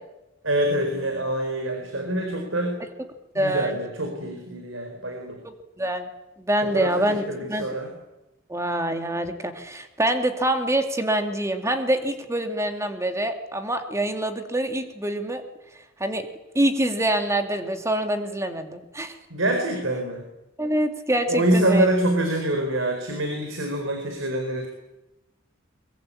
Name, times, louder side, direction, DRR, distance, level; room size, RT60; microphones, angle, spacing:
voice 1, 0.4-2.8 3.3-5.4 6.6-7.9 19.3-20.2 21.3-24.7, right 1 dB, 80° right, 4 dB, 4.5 m, -25 dB
voice 2, 3.3-3.8 5.4-6.1 6.4-7.7 8.5-15.4 16.0-16.3 16.5-19.1 20.6-21.9, right 1 dB, 15° right, 6 dB, 2.4 m, -25 dB
23.0 x 23.0 x 8.7 m, 0.97 s
head